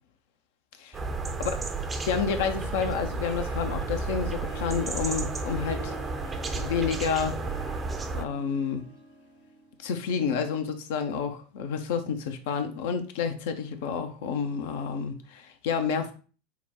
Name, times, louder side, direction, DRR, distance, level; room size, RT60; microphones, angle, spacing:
sound 1, 0.9-8.2, right 3 dB, 20° right, 0.5 m, -32 dB
voice 1, 2.1-5.9 6.6-7.4 8.1-8.8 9.8-16.1, left 6 dB, 60° left, 0.6 m, -29 dB
Harp, 3.3-10.2, equal, 85° left, 1.9 m, -46 dB
5.7 x 2.2 x 2.9 m
figure-of-eight pair, 80°, 0 cm